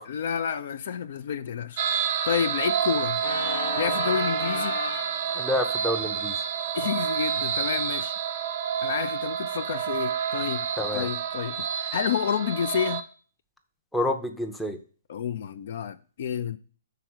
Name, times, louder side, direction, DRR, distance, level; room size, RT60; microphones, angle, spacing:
voice 1, 0.1-1.8 2.2-3.2 3.7-4.8 6.7-8.1 8.8-10.7 10.9-13.0 15.1-16.6, left 8 dB, 55° left, 0.5 m, -29 dB
sound 1, 1.8-13.0, right 8 dB, 50° right, 0.6 m, -29 dB
Organ, 3.2-8.0, left 6 dB, 75° left, 0.8 m, -37 dB
voice 2, 5.3-6.4 10.8-11.1 13.9-14.8, left 1 dB, 5° left, 0.6 m, -28 dB
5.8 x 4.0 x 6.2 m
hypercardioid pair, 155°, 0 cm